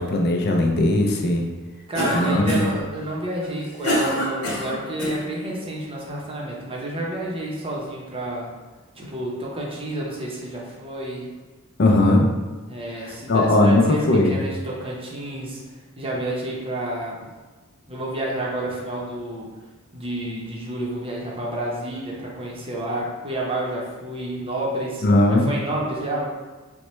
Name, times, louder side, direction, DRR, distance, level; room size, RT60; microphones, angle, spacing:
voice 1, 0.0-1.4 2.1-2.7 11.8-12.3 13.0-14.4 25.0-25.5, left 2 dB, 50° left, 2 dB, 0.5 m, -18 dB
Cough, 1.9-2.8 3.4-5.2, equal, 75° left, 1.1 m, -25 dB
voice 2, 1.9-8.5 8.9-11.3 12.7-15.6 16.0-17.3 17.9-19.5 19.9-26.3, right 1 dB, 25° right, -3 dB, 0.7 m, -30 dB
4.3 x 2.2 x 3.0 m, 1.3 s
head